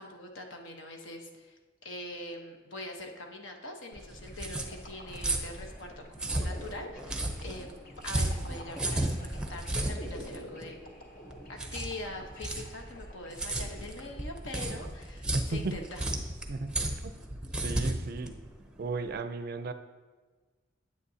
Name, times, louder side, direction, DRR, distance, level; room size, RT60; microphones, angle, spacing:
voice 1, 0.0-7.7 8.0-10.8 11.5-16.0, left 1 dB, 70° left, 3 dB, 1.0 m, -43 dB
sound 1, 3.9-19.1, right 1 dB, 5° right, 0.6 m, -34 dB
sound 2, 4.3-14.7, equal, 45° left, 0.9 m, -50 dB
voice 2, 15.3-15.8 16.5-16.7 17.0-17.1 17.6-18.4 18.8-19.7, right 3 dB, 50° right, 10 dB, 0.4 m, -35 dB
9.5 x 8.3 x 2.8 m, 1.4 s
head